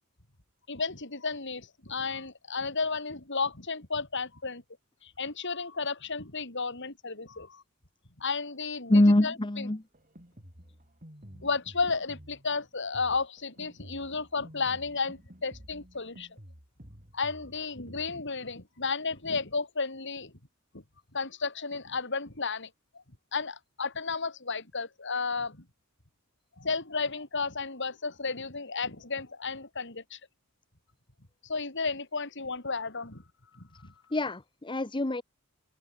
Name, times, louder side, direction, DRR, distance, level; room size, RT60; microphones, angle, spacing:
voice 1, 0.7-4.6 5.0-7.6 8.2-9.7 11.4-16.3 17.1-20.3 20.7-20.8 21.1-22.7 23.3-25.6 26.6-30.2 31.4-33.2 33.5-33.9, left 4 dB, 60° left, 4.5 m, -33 dB
voice 2, 8.9-9.8 34.1-35.2, left 1 dB, 25° left, 1.0 m, -24 dB
Drum kit, 9.9-18.2, equal, 40° right, 8.0 m, -51 dB
open air
head